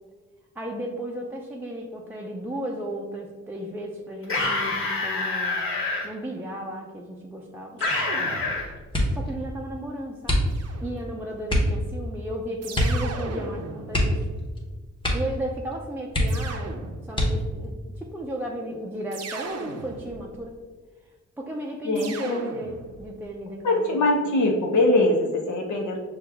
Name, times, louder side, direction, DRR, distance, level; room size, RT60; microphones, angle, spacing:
voice 1, 0.6-5.6 6.0-7.8 9.1-10.5 10.8-14.2 15.1-20.6 21.4-24.2, equal, 5° right, -2 dB, 0.4 m, -34 dB
sound 1, 4.2-6.0 7.8-8.7, left 3 dB, 50° left, 1.4 m, -26 dB
sound 2, 7.8-9.0 10.5-11.4 12.6-14.9 16.3-17.4 19.1-20.5 22.0-23.2, right 4 dB, 60° right, 0.5 m, -38 dB
sound 3, 8.9-9.3 10.2-10.9 11.5-11.8 12.7-13.1 13.3-13.4 13.9-14.6 15.0-15.4 15.7-15.8 16.1-16.6 17.1-17.7 18.4-19.0 19.4-19.8, left 1 dB, 15° left, 0.9 m, -25 dB
voice 2, 21.8-22.4 23.6-26.0, left 2 dB, 80° left, 0 dB, 0.7 m, -22 dB
5.9 x 2.3 x 3.4 m, 1.4 s
cardioid pair, 105°, 29 cm